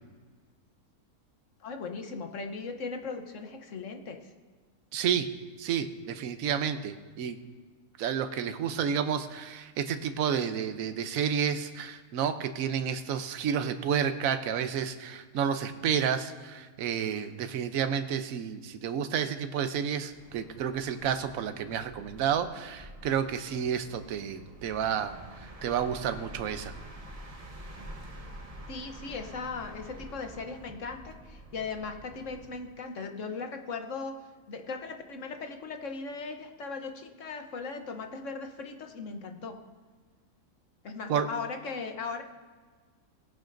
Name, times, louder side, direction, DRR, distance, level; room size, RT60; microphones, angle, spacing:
voice 1, 1.6-4.3 28.7-39.6 40.8-42.2, left 4 dB, 65° left, 5 dB, 1.2 m, -38 dB
voice 2, 4.9-5.3 5.6-7.4 8.0-25.1 25.6-26.7 41.1-41.3, right 8 dB, 75° right, 9 dB, 1.1 m, -30 dB
sound 1, 20.1-32.7, right 1 dB, 30° right, 1.1 m, -47 dB
18.5 x 10.5 x 2.6 m, 1.5 s
omnidirectional pair, 1.5 m